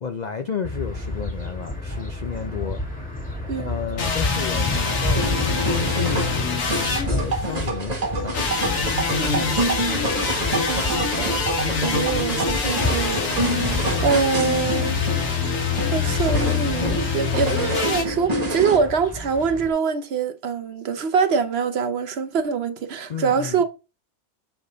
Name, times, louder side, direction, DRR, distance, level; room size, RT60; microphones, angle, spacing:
voice 1, 0.0-3.1 3.6-8.4 23.1-23.6, left 6 dB, 85° left, 0.3 m, -32 dB
sound 1, 0.6-19.7, left 2 dB, 5° left, 2.0 m, -31 dB
sound 2, 4.0-7.7 8.3-18.0, left 5 dB, 65° left, 1.5 m, -26 dB
sound 3, 5.1-18.8, right 1 dB, 30° right, 1.3 m, -27 dB
voice 2, 9.2-9.6 10.6-11.4 11.8-13.2 14.0-15.0 15.9-23.7, right 5 dB, 55° right, 0.8 m, -24 dB
6.9 x 3.6 x 3.8 m
omnidirectional pair, 1.5 m